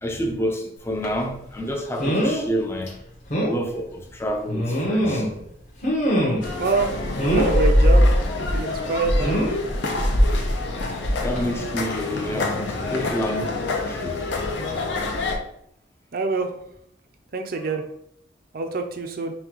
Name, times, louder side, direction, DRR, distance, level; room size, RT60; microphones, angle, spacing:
voice 1, 0.0-3.0 3.5-5.3 11.2-14.2 17.6-17.7, equal, 15° left, 0.5 m, -29 dB
sound 1, 1.0-1.2 2.0-2.4 2.9-3.0 3.3-3.6 4.5-5.4 5.8-6.6 7.2-7.6 9.2-9.6 10.8-11.0 11.3-11.4, equal, 40° left, 1.2 m, -23 dB
sound 2, 6.4-15.4, left 1 dB, 65° left, 0.6 m, -23 dB
voice 2, 6.6-9.4 16.1-16.5 17.3-17.8 18.5-19.3, right 4 dB, 50° right, 0.5 m, -26 dB
5.7 x 2.3 x 3.0 m
head